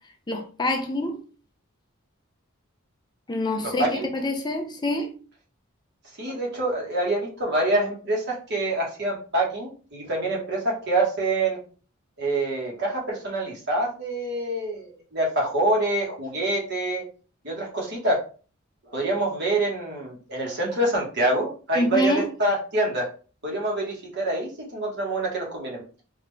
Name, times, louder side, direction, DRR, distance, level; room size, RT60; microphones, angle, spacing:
voice 1, 0.3-1.2 3.3-5.2 21.8-22.3, left 1 dB, 20° left, 0.5 m, -26 dB
voice 2, 3.8-4.1 6.2-11.6 12.2-17.0 17.4-18.2 18.8-23.1 23.4-25.8, right 2 dB, 55° right, 1.5 m, -26 dB
3.6 x 2.8 x 3.3 m
head